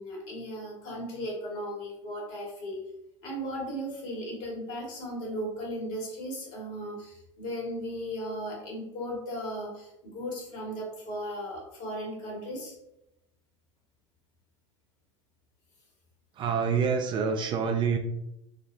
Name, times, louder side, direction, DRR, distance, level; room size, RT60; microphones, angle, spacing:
voice 1, 0.0-2.8 3.2-12.7, equal, 50° left, -2 dB, 1.4 m, -36 dB
voice 2, 16.3-18.0, right 6 dB, 30° right, 5 dB, 0.3 m, -26 dB
3.9 x 2.1 x 2.6 m, 0.85 s
figure-of-eight pair, 80°, 16 cm